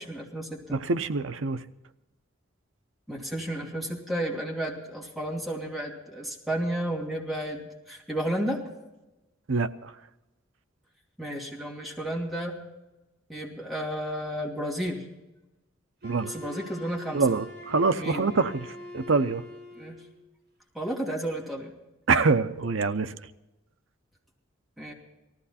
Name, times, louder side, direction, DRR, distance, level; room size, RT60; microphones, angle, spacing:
voice 1, 0.0-0.8 3.1-8.6 11.2-12.5 13.3-15.0 16.3-17.2 17.9-18.2 19.7-20.0 20.7-21.7 24.8-24.9, right 1 dB, ahead, 2.6 m, -32 dB
voice 2, 0.7-1.6 9.5-9.9 16.0-16.3 17.1-18.6 18.9-19.4 22.1-23.1, right 4 dB, 70° right, 0.7 m, -25 dB
Wind instrument woodwind instrument, 16.0-20.1, left 1 dB, 55° right, 5.2 m, -43 dB
19.0 x 15.0 x 4.3 m
head